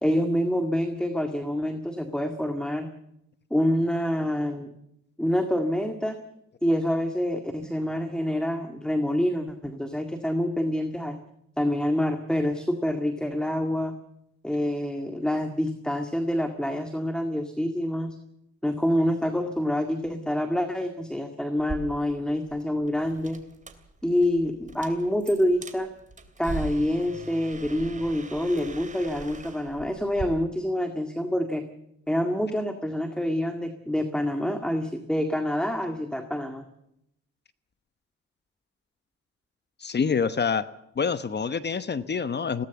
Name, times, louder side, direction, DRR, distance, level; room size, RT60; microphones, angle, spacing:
voice 1, 0.0-2.9 3.5-4.7 5.2-6.2 6.6-11.2 11.6-13.9 14.4-18.2 18.6-23.4 24.0-25.9 26.4-31.7 32.1-36.7, left 1 dB, 5° left, 6 dB, 1.9 m, -27 dB
sound 1, 21.6-30.3, right 3 dB, 25° right, 2.9 m, -41 dB
voice 2, 39.8-40.7 41.0-42.7, left 6 dB, 35° left, 13 dB, 1.0 m, -26 dB
20.5 x 18.0 x 7.1 m, 0.80 s
cardioid pair, 90°, 30 cm